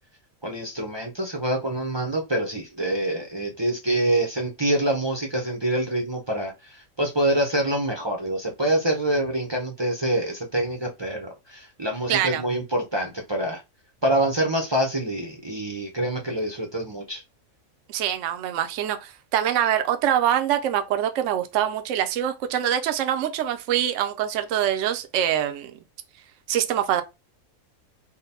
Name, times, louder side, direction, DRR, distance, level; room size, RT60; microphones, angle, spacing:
voice 1, 0.4-13.6 14.0-17.2, right 1 dB, 30° right, 0.5 m, -26 dB
voice 2, 12.1-12.4 17.9-25.8 26.5-27.0, right 10 dB, 70° right, 0.9 m, -24 dB
3.8 x 2.2 x 4.1 m
omnidirectional pair, 1.5 m